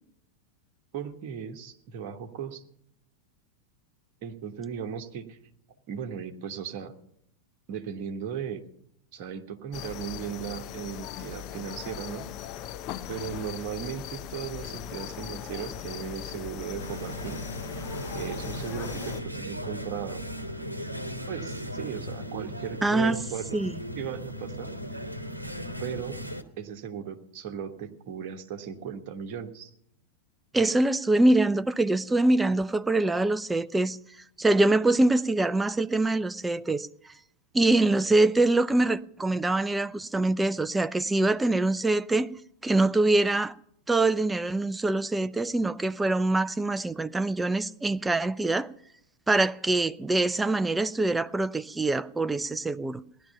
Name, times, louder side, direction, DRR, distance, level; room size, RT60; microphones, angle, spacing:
voice 1, 0.9-2.6 4.2-5.4 5.9-6.9 7.7-8.6 9.1-12.3 13.1-17.4 18.1-20.2 21.3-23.4 23.9-25.0 25.8-26.3 26.6-29.7, right 8 dB, 45° right, 1.4 m, -37 dB
sound 1, 9.7-19.2, left 11 dB, 40° left, 0.7 m, -39 dB
sound 2, 16.8-26.4, equal, 85° right, 1.0 m, -37 dB
voice 2, 22.8-23.2 23.5-23.7 30.5-34.0 34.4-36.9 37.5-42.3 42.6-43.6 43.9-48.7 49.3-53.0, right 2 dB, 10° right, 0.5 m, -24 dB
17.0 x 11.0 x 5.6 m
figure-of-eight pair, 90°, 0 cm